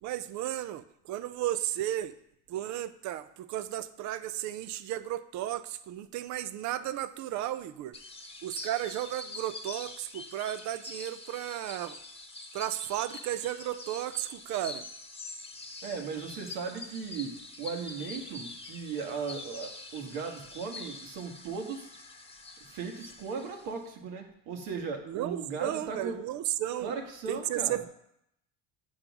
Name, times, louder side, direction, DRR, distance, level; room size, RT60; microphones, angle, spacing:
voice 1, 0.0-2.1 2.5-7.9 8.4-12.0 12.5-14.9 25.1-26.9 27.3-27.9, right 13 dB, 55° right, 13 dB, 0.6 m, -34 dB
sound 1, 7.9-23.9, left 3 dB, 15° left, 1.0 m, -45 dB
voice 2, 15.8-21.9 22.6-26.3 26.8-27.9, right 5 dB, 75° right, 3 dB, 1.6 m, -37 dB
8.8 x 3.9 x 6.0 m, 0.75 s
supercardioid pair, 110°, 35 cm